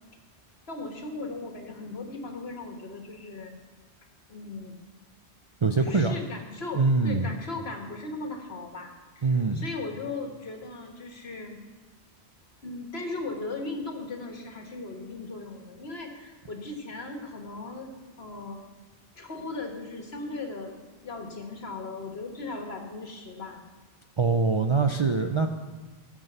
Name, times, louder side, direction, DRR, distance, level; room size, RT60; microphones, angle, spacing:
voice 1, 0.7-3.5 4.3-4.8 5.8-11.6 12.6-17.9 18.2-18.6 19.2-20.7 21.0-23.7, left 3 dB, 65° left, 3 dB, 1.8 m, -37 dB
voice 2, 5.6-6.2 6.7-7.3 9.2-9.7 24.2-25.5, right 4 dB, 40° right, 5 dB, 0.4 m, -23 dB
15.0 x 6.2 x 6.6 m, 1.3 s
omnidirectional pair, 1.1 m